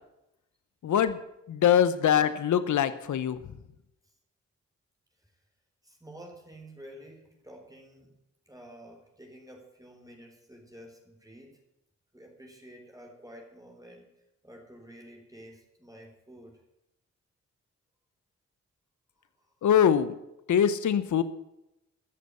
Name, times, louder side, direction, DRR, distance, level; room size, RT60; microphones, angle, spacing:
voice 1, 0.8-1.2 1.5-3.4 19.6-20.1 20.5-21.2, left 9 dB, 75° left, 13 dB, 1.0 m, -23 dB
voice 2, 5.8-8.2 8.5-11.6 12.1-14.1 14.4-16.6 19.2-19.5, right 1 dB, 10° right, 1 dB, 4.1 m, -50 dB
14.5 x 6.8 x 9.6 m, 0.87 s
supercardioid pair, 50°, 30 cm